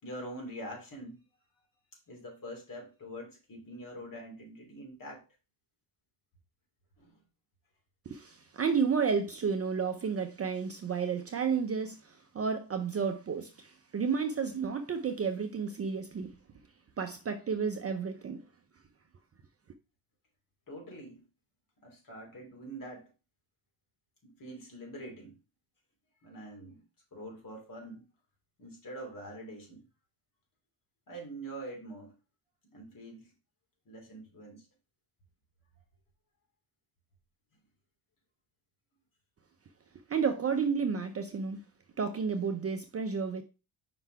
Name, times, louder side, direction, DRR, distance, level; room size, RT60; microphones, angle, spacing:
voice 1, 0.0-1.2 2.1-5.2 7.0-7.1 20.7-21.3 21.8-23.1 24.2-25.4 26.2-26.8 27.1-28.1 28.6-29.9 31.1-32.2 32.7-33.3 33.8-34.7, right 1 dB, 40° left, 3.0 m, -45 dB
voice 2, 8.1-16.3 17.0-18.4 40.1-41.6 42.0-43.4, right 6 dB, 30° right, 0.6 m, -31 dB
5.5 x 4.0 x 4.6 m
cardioid pair, 120°, 48 cm